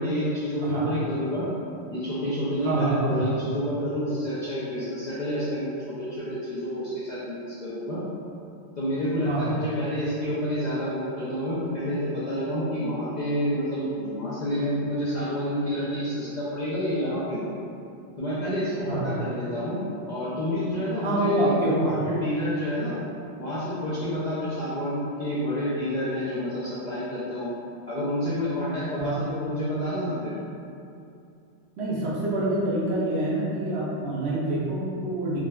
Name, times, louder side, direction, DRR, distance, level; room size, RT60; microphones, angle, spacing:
voice 1, 0.0-1.5 1.9-8.0 8.8-17.4 18.2-19.8 20.1-23.0 23.4-27.5 27.9-30.3, equal, 50° left, -11 dB, 0.5 m, -28 dB
voice 2, 0.6-0.9 2.6-3.4 9.3-9.6 18.9-19.1 21.0-22.0 29.0-29.2 31.8-35.4, right 1 dB, 65° right, -6 dB, 0.8 m, -26 dB
3.6 x 2.1 x 2.2 m, 2.6 s
omnidirectional pair, 1.2 m